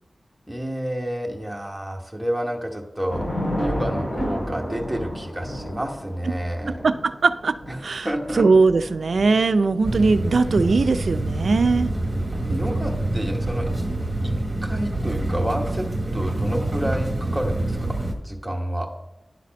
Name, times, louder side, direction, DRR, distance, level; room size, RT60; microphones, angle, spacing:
voice 1, 0.5-3.3 3.6-6.8 7.7-7.8 8.0-8.5 12.5-13.7 14.2-14.3 14.6-15.9 16.1-18.9, equal, 5° right, 1 dB, 1.1 m, -29 dB
Thunder / Rain, 3.1-15.6, equal, 60° left, 3.2 m, -34 dB
voice 2, 6.7-7.6 7.8-8.1 8.3-11.9, right 4 dB, 85° right, 12 dB, 0.3 m, -20 dB
sound 1, 9.8-18.1, right 2 dB, 25° right, 1.2 m, -26 dB
10.5 x 4.1 x 5.2 m, 0.90 s
wide cardioid pair, 85°, 0 cm